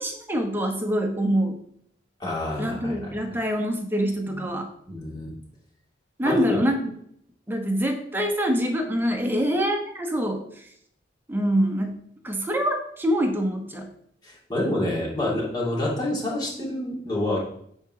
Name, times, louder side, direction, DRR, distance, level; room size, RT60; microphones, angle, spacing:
voice 1, 0.0-1.6 2.6-4.7 6.2-6.8 7.5-10.4 11.3-12.0 12.2-13.9, equal, 10° right, 3 dB, 1.0 m, -25 dB
voice 2, 2.2-3.1 4.3-4.4 4.9-5.3 6.2-6.6 14.2-17.4, left 1 dB, 25° left, -5 dB, 2.5 m, -27 dB
8.9 x 3.8 x 4.9 m, 0.67 s
head